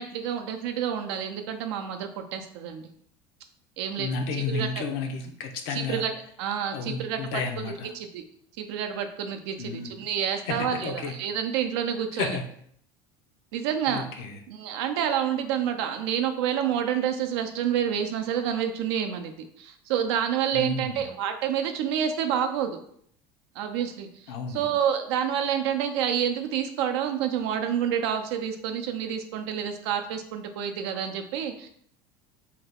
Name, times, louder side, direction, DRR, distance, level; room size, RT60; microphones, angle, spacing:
voice 1, 0.0-2.8 3.8-4.1 4.5-4.8 5.7-6.1 6.4-7.2 7.6-8.2 8.6-12.4 13.5-14.1 14.5-22.8 23.6-24.1 24.5-31.7, right 9 dB, 90° right, 6 dB, 0.5 m, -28 dB
voice 2, 4.0-6.1 6.7-7.9 9.6-10.1 10.5-11.2 12.1-12.5 13.9-14.4 20.5-21.0 24.3-24.7, left 4 dB, 85° left, 4 dB, 0.6 m, -32 dB
2.8 x 2.3 x 3.4 m, 0.66 s
cardioid pair, 150°, 13 cm